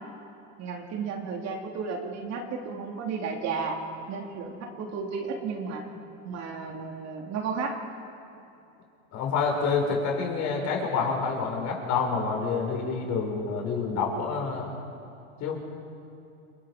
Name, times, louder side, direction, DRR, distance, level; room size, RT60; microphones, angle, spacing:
voice 1, 0.6-3.8 4.1-5.8 6.2-7.8, right 5 dB, 40° right, 1 dB, 2.9 m, -33 dB
voice 2, 9.1-14.7 15.4-15.6, left 5 dB, 40° left, 0 dB, 5.7 m, -28 dB
30.0 x 18.5 x 5.0 m, 2.7 s
supercardioid pair, 120°, 41 cm